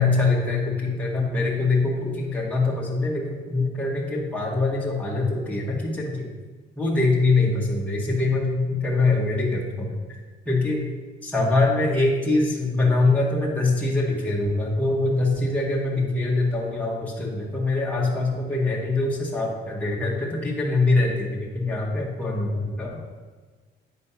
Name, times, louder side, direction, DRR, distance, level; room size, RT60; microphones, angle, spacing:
voice 1, 0.0-6.3 6.8-10.0 10.4-10.9 11.2-23.0, left 3 dB, 5° left, -4 dB, 1.5 m, -23 dB
9.0 x 3.3 x 5.6 m, 1.4 s
cardioid pair, 90°, 20 cm